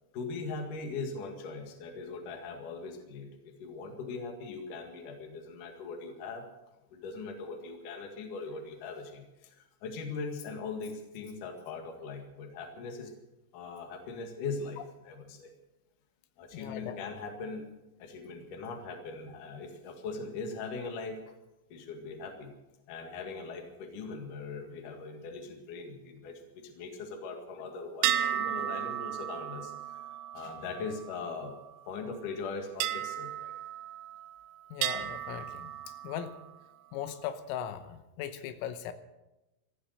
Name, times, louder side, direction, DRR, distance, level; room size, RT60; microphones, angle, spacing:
voice 1, 0.1-6.4 6.9-13.2 13.5-15.5 16.4-17.7 18.0-21.2 21.7-22.5 22.9-31.5 31.9-33.5, left 4 dB, 50° left, 4 dB, 2.8 m, -40 dB
voice 2, 16.5-17.0 34.7-35.7 36.0-36.4 36.9-38.9, left 9 dB, 90° left, 10 dB, 3.6 m, -38 dB
sound 1, 28.0-31.7 32.8-34.4 34.8-36.5, right 11 dB, 85° right, 3.4 m, -34 dB
14.5 x 14.0 x 6.7 m, 0.98 s
omnidirectional pair, 5.8 m